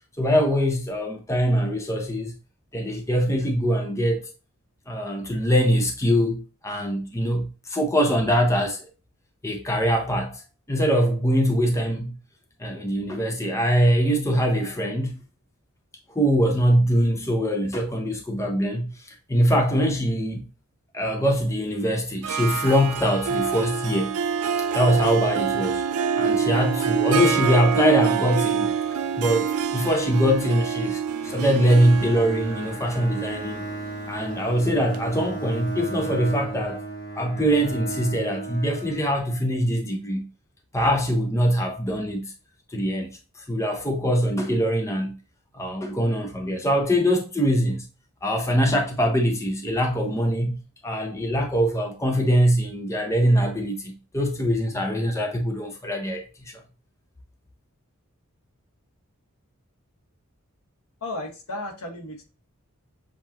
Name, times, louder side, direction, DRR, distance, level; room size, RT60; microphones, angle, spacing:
voice 1, 0.2-2.3 2.7-4.2 4.9-8.9 9.4-10.4 10.7-12.1 12.6-15.2 16.1-20.5 20.9-24.1 24.7-25.8 26.2-28.7 29.2-33.6 34.1-36.8 37.2-40.2 40.7-42.3 42.7-43.2 43.5-45.1 45.5-47.8 48.2-50.6 50.8-56.6, equal, 15° left, 0.6 m, -23 dB
Harp, 22.2-35.8, right 7 dB, 90° right, 0.4 m, -26 dB
Bowed string instrument, 31.2-39.4, right 2 dB, 45° left, 1.1 m, -35 dB
voice 2, 61.0-62.2, left 2 dB, 85° left, 1.4 m, -34 dB
7.2 x 2.5 x 2.8 m
head